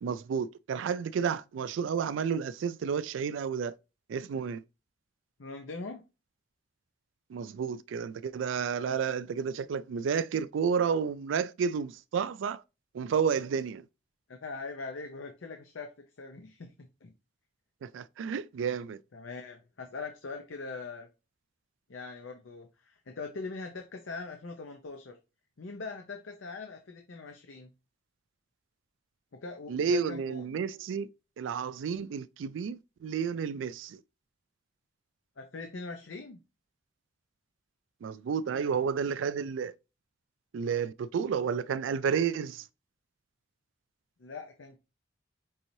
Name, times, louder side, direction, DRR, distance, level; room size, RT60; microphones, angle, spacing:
voice 1, 0.0-3.7 4.1-4.6 7.3-12.6 12.9-13.9 17.8-19.0 29.7-31.1 31.4-34.0 38.0-39.7 40.5-42.7, right 6 dB, 85° right, 0.3 m, -31 dB
voice 2, 5.4-6.0 14.3-15.9 16.2-17.1 19.1-21.1 21.9-25.2 25.6-27.7 29.3-30.4 35.4-36.4 44.2-44.8, left 3 dB, 90° left, 0.7 m, -42 dB
5.4 x 2.7 x 3.0 m
head